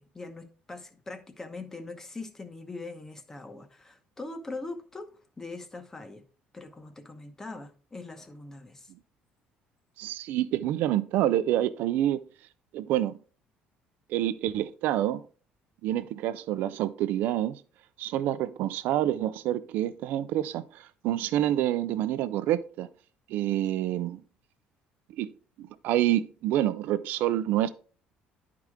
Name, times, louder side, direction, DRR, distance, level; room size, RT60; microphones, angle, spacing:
voice 1, 0.0-5.1 5.4-6.2 6.5-8.9, left 3 dB, 15° left, 0.9 m, -42 dB
voice 2, 10.0-12.2 12.7-13.1 14.1-15.2 15.8-17.6 18.0-22.9 23.3-24.2 25.2-25.3 25.6-27.7, right 13 dB, 70° right, 0.6 m, -27 dB
10.5 x 4.7 x 3.6 m
cardioid pair, 150°, 3 cm